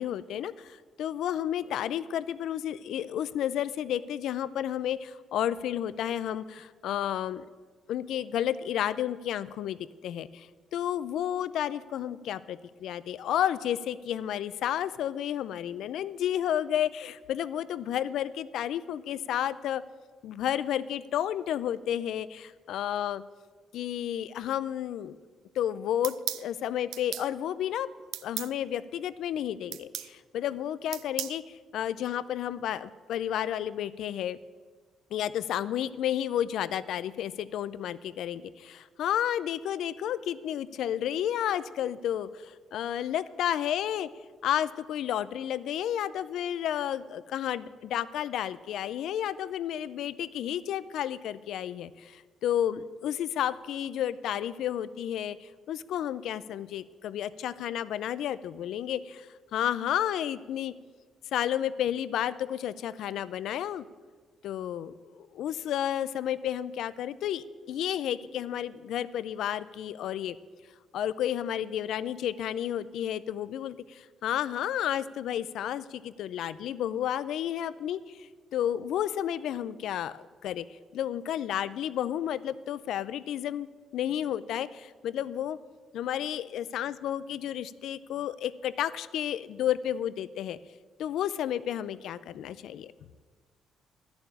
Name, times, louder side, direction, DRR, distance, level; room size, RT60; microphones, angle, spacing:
voice 1, 0.0-7.5 7.9-19.8 20.2-23.2 23.7-25.2 25.6-27.9 28.2-34.4 35.1-44.1 44.4-60.7 61.3-63.8 64.4-70.4 70.9-80.6 80.9-83.7 83.9-85.6 85.9-90.6 91.0-92.9, left 10 dB, 80° left, 16 dB, 0.4 m, -31 dB
sound 1, 26.0-26.5 26.9-27.3 28.1-28.5 29.7-30.1 30.9-31.4, right 12 dB, 85° right, 0.4 m, -35 dB
11.5 x 7.0 x 9.0 m, 1.4 s
cardioid pair, 90°, 0 cm